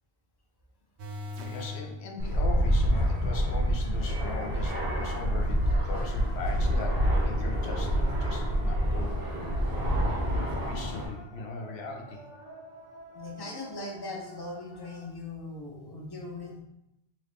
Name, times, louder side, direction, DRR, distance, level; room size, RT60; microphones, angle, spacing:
sound 1, 1.0-1.9 8.3-8.4, left 2 dB, 75° right, 1.0 m, -38 dB
voice 1, 1.4-9.3 10.0-12.3, left 3 dB, 70° left, 3 dB, 0.9 m, -39 dB
Fixed-wing aircraft airplane, 2.2-11.0, equal, 55° right, 1.5 m, -27 dB
sound 2, 4.0-15.1, left 1 dB, 50° left, 1.0 m, -50 dB
voice 2, 13.1-16.6, left 2 dB, 25° left, -1 dB, 0.6 m, -39 dB
3.8 x 3.1 x 3.4 m, 0.84 s
omnidirectional pair, 1.1 m